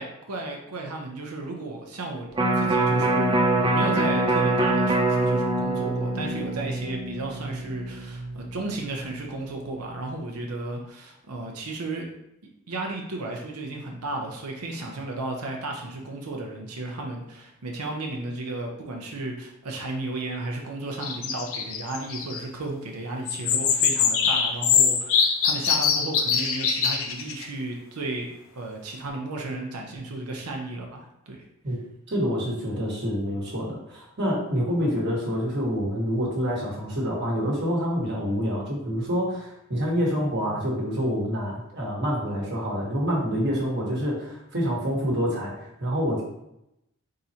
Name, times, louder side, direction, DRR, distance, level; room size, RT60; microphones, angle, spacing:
voice 1, 0.0-2.3 2.5-12.0 12.7-31.5, right 2 dB, 85° right, 1 dB, 0.7 m, -34 dB
Electric guitar, 2.3-8.6 9.0-9.1, right 2 dB, 20° right, 0.3 m, -24 dB
sound 1, 21.0-22.4 23.3-27.4, left 6 dB, 65° left, 0.5 m, -23 dB
voice 2, 32.1-46.2, equal, 50° right, -3 dB, 1.2 m, -27 dB
4.2 x 3.7 x 2.8 m, 0.82 s
head